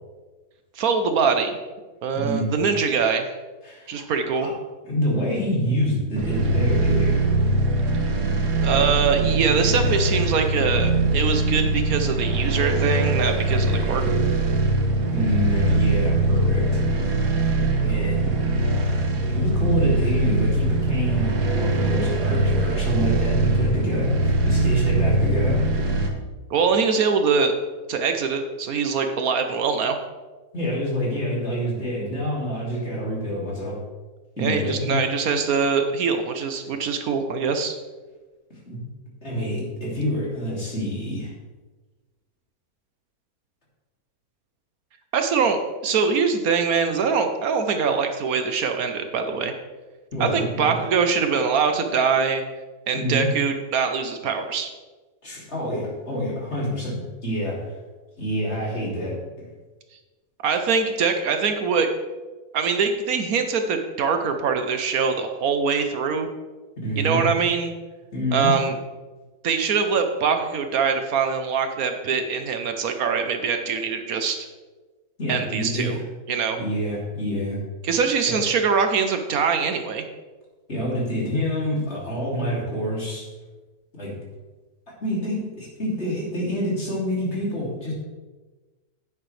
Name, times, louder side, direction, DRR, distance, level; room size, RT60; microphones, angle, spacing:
voice 1, 0.8-1.6 2.0-3.3 3.9-4.5 8.6-14.2 26.5-27.5 27.9-30.0 34.4-37.8 45.1-49.5 50.2-52.4 52.9-54.7 60.4-61.9 62.5-66.3 67.0-67.7 68.3-68.7 69.4-74.5 75.3-76.0 76.3-76.6 77.8-80.1, right 5 dB, 70° right, 6 dB, 1.2 m, -23 dB
voice 2, 2.1-2.5 3.6-4.1 4.4-4.5 4.8-7.2 15.1-16.8 17.8-18.4 19.3-25.6 30.5-33.8 34.4-35.0 38.7-38.8 39.2-41.3 50.1-50.9 52.9-53.3 55.2-57.7 58.2-59.2 66.8-67.2 68.1-68.5 75.2-76.0 76.5-77.6 78.3-78.4 80.7-83.3 83.9-84.1 85.0-87.9, equal, 45° left, -5 dB, 3.1 m, -27 dB
sound 1, 6.2-26.1, right 2 dB, 90° right, 1.7 m, -22 dB
10.5 x 8.9 x 3.3 m, 1.3 s
omnidirectional pair, 1.6 m